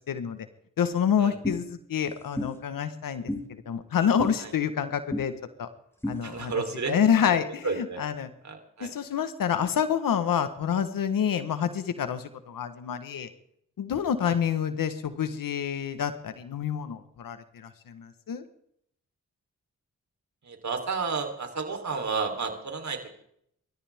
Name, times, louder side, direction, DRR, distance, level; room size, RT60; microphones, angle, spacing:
voice 1, 0.1-0.4 0.8-5.3 5.6-5.7 6.1-8.3 8.8-13.3 13.8-18.4, left 8 dB, 85° left, 10 dB, 1.4 m, -28 dB
sound 1, 1.4-1.6 2.4-2.5 3.3-3.4 4.2-4.3 5.1-5.3 6.0-6.2, left 1 dB, 5° left, 6.3 m, -30 dB
voice 2, 6.2-6.9 7.2-7.3 7.6-8.0 8.4-8.9 14.2-14.3 20.5-23.0, right 4 dB, 55° right, 4 dB, 3.8 m, -31 dB
26.5 x 13.5 x 3.6 m, 0.69 s
cardioid pair, 55°, 33 cm